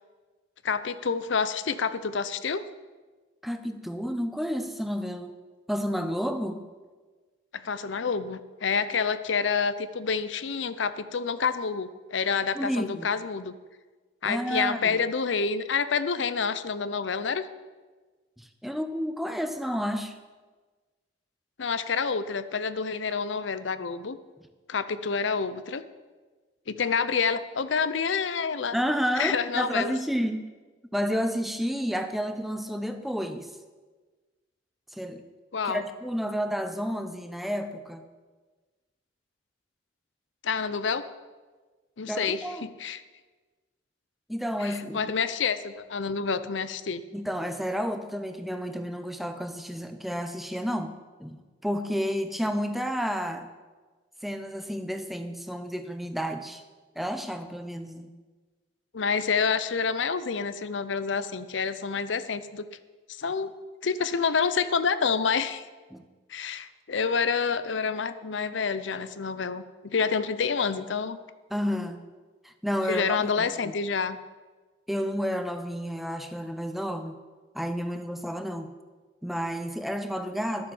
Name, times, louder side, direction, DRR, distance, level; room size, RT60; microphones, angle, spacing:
voice 1, 0.6-2.6 7.5-13.6 14.2-17.5 21.6-24.2 24.7-25.8 26.7-28.8 29.2-29.9 35.5-35.8 40.4-41.0 42.0-43.0 44.6-47.0 58.9-62.7 63.2-63.5 63.8-65.6 66.3-71.2 72.9-74.2, left 5 dB, 80° left, 13 dB, 0.6 m, -28 dB
voice 2, 3.4-5.3 5.7-6.6 12.5-13.1 14.2-15.0 18.4-20.2 28.7-30.5 30.9-33.5 34.9-35.2 35.6-38.0 42.0-42.7 44.3-45.0 47.1-50.9 51.2-53.5 54.2-56.6 57.0-58.1 65.9-66.0 71.5-72.0 72.4-73.7 74.9-77.2 77.5-78.7 79.2-80.7, equal, ahead, 7 dB, 0.7 m, -31 dB
11.5 x 7.0 x 7.2 m, 1.3 s
head